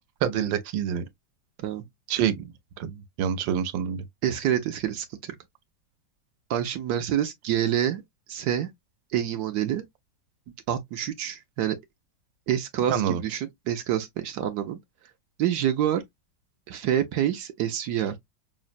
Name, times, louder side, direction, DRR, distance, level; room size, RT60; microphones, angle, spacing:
voice 1, 0.2-1.0 2.1-2.5 2.8-4.0 12.9-13.2, right 8 dB, 85° right, 1.4 m, -26 dB
voice 2, 4.2-5.4 6.5-8.0 8.3-8.7 9.1-9.8 10.7-11.8 12.5-14.8 15.4-16.0 16.7-18.1, right 10 dB, 70° right, 1.0 m, -27 dB
5.6 x 2.0 x 2.5 m
omnidirectional pair, 2.0 m